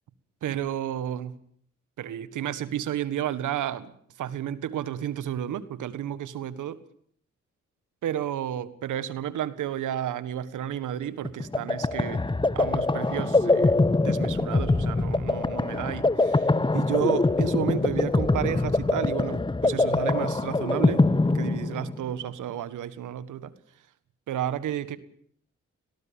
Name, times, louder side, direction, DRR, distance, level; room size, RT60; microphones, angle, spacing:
voice 1, 0.4-1.4 2.0-6.8 8.0-12.3 12.5-21.1 21.3-23.5 24.3-25.0, right 10 dB, 85° right, 15 dB, 1.7 m, -32 dB
sound 1, 11.2-22.1, left 2 dB, 15° left, 1.0 m, -24 dB
18.5 x 18.0 x 8.8 m, 0.62 s
cardioid pair, 55°, 30 cm